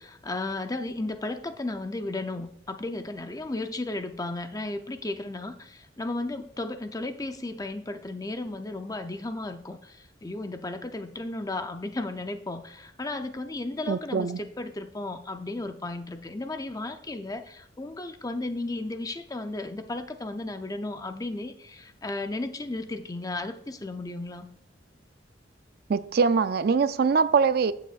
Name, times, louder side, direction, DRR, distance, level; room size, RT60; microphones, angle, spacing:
voice 1, 0.0-24.5, left 2 dB, 20° left, 8 dB, 0.5 m, -34 dB
voice 2, 13.9-14.4 25.9-27.7, right 5 dB, 55° right, 13 dB, 0.4 m, -23 dB
14.0 x 7.2 x 2.4 m, 0.73 s
head